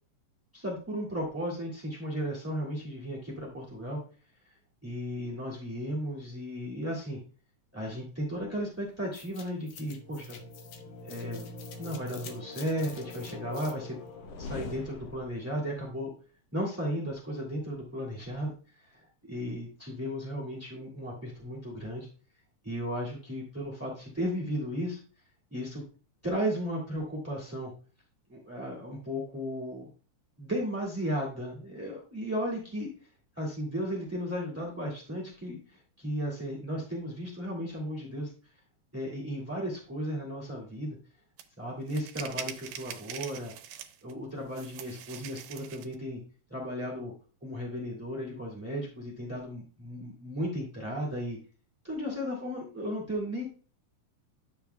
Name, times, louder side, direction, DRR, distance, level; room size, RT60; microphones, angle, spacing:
voice 1, 0.5-4.0 4.4-4.5 4.8-7.2 7.7-10.4 11.0-11.5 11.8-14.0 14.4-16.1 16.5-22.1 22.6-25.0 25.5-25.8 26.2-27.7 28.3-29.9 30.4-32.9 33.3-38.3 38.9-41.0 41.6-43.5 44.0-46.2 46.5-47.1 47.4-51.4 51.8-53.6, equal, 5° right, -4 dB, 1.2 m, -35 dB
sound 1, 9.1-15.5, left 3 dB, 65° left, 1.6 m, -43 dB
sound 2, 41.4-41.5 41.9-44.1 44.5-45.9, right 10 dB, 85° right, 2.4 m, -42 dB
11.5 x 6.9 x 2.3 m, 0.37 s
omnidirectional pair, 3.8 m